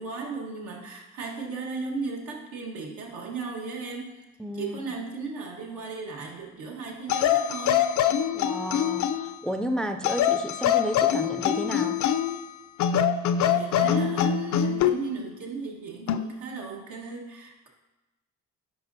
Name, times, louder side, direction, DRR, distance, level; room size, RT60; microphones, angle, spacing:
voice 1, 0.0-4.2 4.5-7.9 13.5-17.7, right 4 dB, 85° right, -1 dB, 1.4 m, -36 dB
voice 2, 4.4-4.8 8.3-12.0, equal, 5° left, 7 dB, 0.3 m, -32 dB
sound 1, 7.1-9.3 10.0-12.4 12.8-15.0 16.1-16.3, left 9 dB, 70° left, 0.4 m, -24 dB
10.5 x 5.0 x 2.7 m, 1.1 s
cardioid pair, 90°, 30 cm